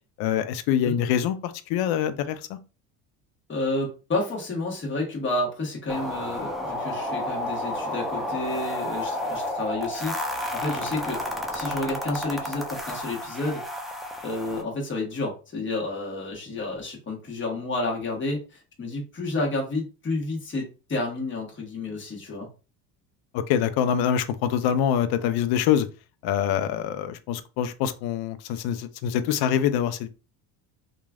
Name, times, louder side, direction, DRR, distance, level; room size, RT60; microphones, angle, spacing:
voice 1, 0.2-2.6 23.3-25.9 26.2-30.1, left 9 dB, 60° left, 0.5 m, -25 dB
voice 2, 3.5-10.1 10.5-13.6 14.2-22.5, left 2 dB, 25° left, 1.3 m, -30 dB
sound 1, 5.9-14.6, left 1 dB, ahead, 0.5 m, -31 dB
3.0 x 2.4 x 2.3 m
hypercardioid pair, 75°, 43 cm